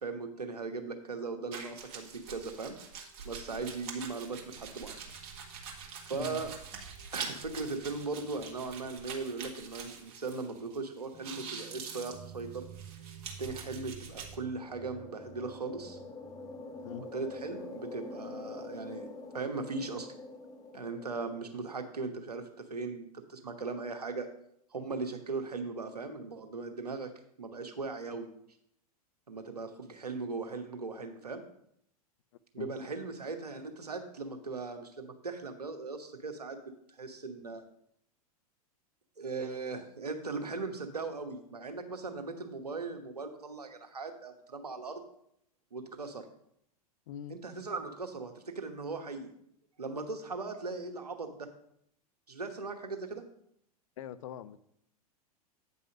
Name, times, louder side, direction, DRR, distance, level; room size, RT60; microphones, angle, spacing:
voice 1, 0.0-2.8 3.2-5.0 5.9-6.5 7.1-12.6 13.4-16.0 17.0-19.1 19.3-20.1 20.7-24.3 24.7-27.1 27.4-28.3 29.3-31.5 32.5-36.6 37.0-37.6 39.2-44.9 45.7-46.2 47.3-49.3 49.8-51.5 52.3-53.2, right 4 dB, 85° right, 6 dB, 1.1 m, -38 dB
sound 1, 1.5-10.8 11.0-14.4, right 6 dB, 50° right, 1.6 m, -45 dB
sound 2, 4.1-9.5 9.8-9.9 11.1-17.7, right 9 dB, 10° right, 1.1 m, -54 dB
sound 3, 14.1-21.8, left 3 dB, 20° left, 1.0 m, -46 dB
voice 2, 47.1-47.4 54.0-54.6, left 9 dB, 55° left, 14 dB, 0.5 m, -42 dB
8.7 x 5.5 x 5.0 m, 0.71 s
figure-of-eight pair, 95°, 20 cm